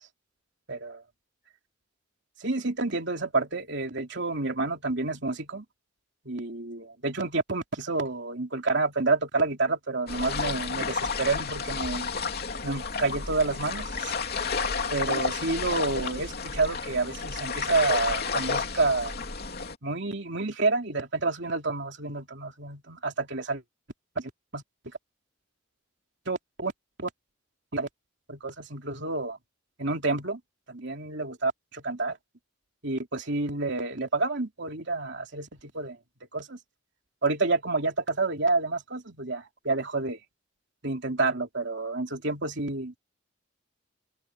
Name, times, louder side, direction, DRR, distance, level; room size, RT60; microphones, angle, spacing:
voice 1, 0.7-1.0 2.4-5.6 6.2-12.1 12.6-14.1 14.9-19.1 19.8-23.6 24.1-24.6 26.3-26.7 27.0-27.1 27.7-27.9 28.3-29.4 29.8-30.4 30.7-32.2 32.8-36.0 36.3-36.6 37.2-40.2 40.8-43.0, right 3 dB, 60° right, 3.2 m, -29 dB
sound 1, 10.1-19.8, left 5 dB, 50° left, 3.1 m, -31 dB
open air
head